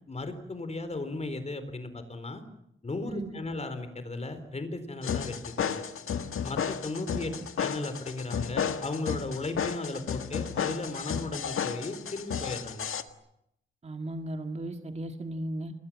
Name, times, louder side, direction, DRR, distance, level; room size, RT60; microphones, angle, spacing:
voice 1, 0.1-2.4 2.8-5.7 6.4-7.3 7.6-12.9, left 2 dB, 30° left, 10 dB, 4.0 m, -36 dB
sound 1, 5.0-13.0, left 7 dB, 90° left, 1.7 m, -33 dB
voice 2, 13.8-15.7, right 1 dB, 30° right, 5 dB, 2.0 m, -36 dB
28.5 x 22.0 x 7.5 m, 0.78 s
wide cardioid pair, 145°, 21 cm